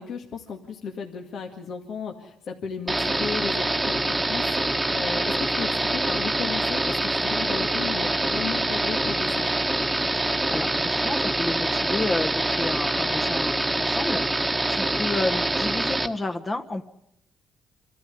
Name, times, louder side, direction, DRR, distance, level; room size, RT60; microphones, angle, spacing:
voice 1, 0.0-9.5, left 6 dB, 65° left, 2 dB, 2.1 m, -35 dB
sound 1, 2.9-16.1, right 2 dB, 10° right, 1.4 m, -25 dB
Wind instrument woodwind instrument, 4.5-11.3, left 1 dB, 5° left, 2.1 m, -44 dB
voice 2, 10.2-16.8, left 2 dB, 25° left, 5 dB, 1.3 m, -31 dB
26.5 x 13.5 x 9.3 m, 0.79 s
cardioid pair, 90°, 0 cm